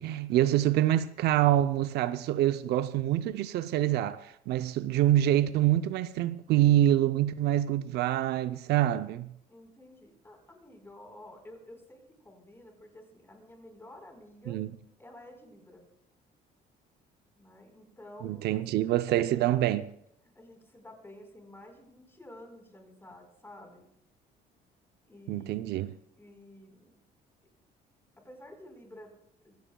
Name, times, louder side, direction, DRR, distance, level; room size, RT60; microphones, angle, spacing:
voice 1, 0.0-9.3 14.5-14.7 18.2-19.9 25.3-25.9, right 13 dB, 75° right, 0.6 m, -26 dB
voice 2, 9.5-14.6 15.0-15.8 17.4-19.4 20.3-23.8 25.1-25.7 26.2-27.0 28.2-29.1 29.4-29.6, left 1 dB, 15° left, 4.3 m, -51 dB
25.5 x 16.0 x 2.3 m
cardioid pair, 110°, 17 cm